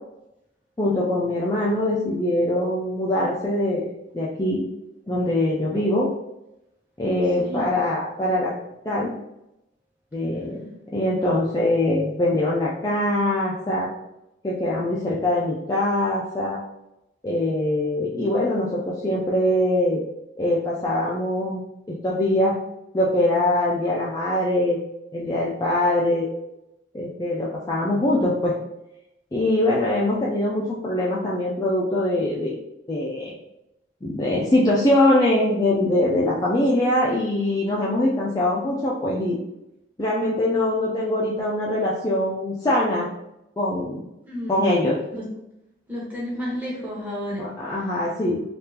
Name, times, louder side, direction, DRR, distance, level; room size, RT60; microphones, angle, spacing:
voice 1, 0.8-3.9 4.1-4.6 5.1-6.1 7.0-8.5 8.8-9.1 10.1-13.9 14.4-16.6 17.2-20.0 20.4-21.6 21.9-22.6 22.9-24.8 25.1-26.3 26.9-28.6 29.3-32.6 32.9-33.3 34.0-39.4 40.0-43.1 43.6-44.0 44.5-45.0 47.4-48.4, left 1 dB, 20° left, -5 dB, 0.3 m, -23 dB
voice 2, 44.3-44.6 45.1-45.2 45.9-47.5, equal, 10° right, -5 dB, 0.9 m, -31 dB
3.5 x 2.4 x 2.7 m, 0.89 s
head